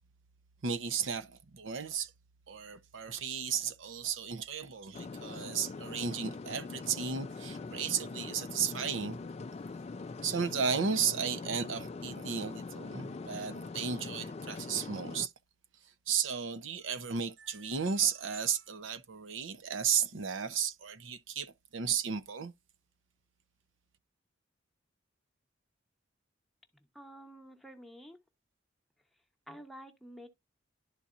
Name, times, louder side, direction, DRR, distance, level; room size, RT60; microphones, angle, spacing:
voice 1, 0.6-2.1 2.5-9.2 10.2-15.3 16.1-22.5, right 6 dB, 80° right, 0.7 m, -34 dB
sound 1, 4.9-15.3, left 3 dB, 30° left, 0.3 m, -42 dB
voice 2, 26.9-28.2 29.5-30.3, equal, ahead, 1.0 m, -49 dB
11.5 x 4.2 x 2.5 m
head